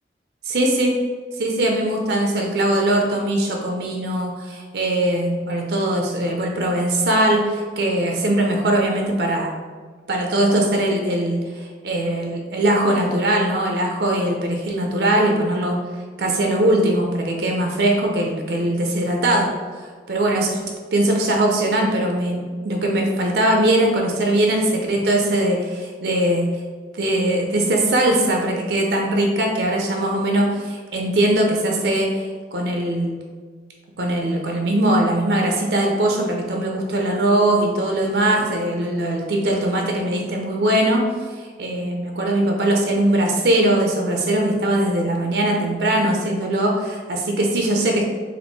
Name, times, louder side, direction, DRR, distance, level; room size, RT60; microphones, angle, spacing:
voice 1, 0.4-1.0 1.4-9.5 10.1-15.8 16.2-20.6 20.9-26.5 27.0-33.2 34.0-41.0 41.4-48.0, right 1 dB, 60° right, 1 dB, 0.5 m, -21 dB
3.5 x 2.6 x 3.9 m, 1.5 s
head